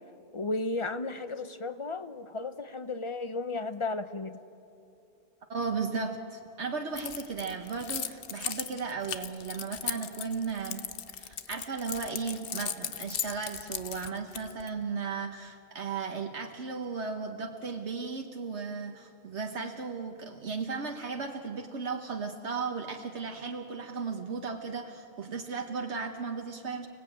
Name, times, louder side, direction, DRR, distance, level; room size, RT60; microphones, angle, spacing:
voice 1, 0.3-4.4, left 3 dB, 30° left, 11 dB, 0.8 m, -34 dB
voice 2, 5.5-10.9 11.2-26.9, right 5 dB, 70° right, 3 dB, 1.4 m, -35 dB
Keys jangling, 7.0-14.7, left 8 dB, 55° left, 0.9 m, -37 dB
30.0 x 18.5 x 8.7 m, 2.7 s
omnidirectional pair, 1.2 m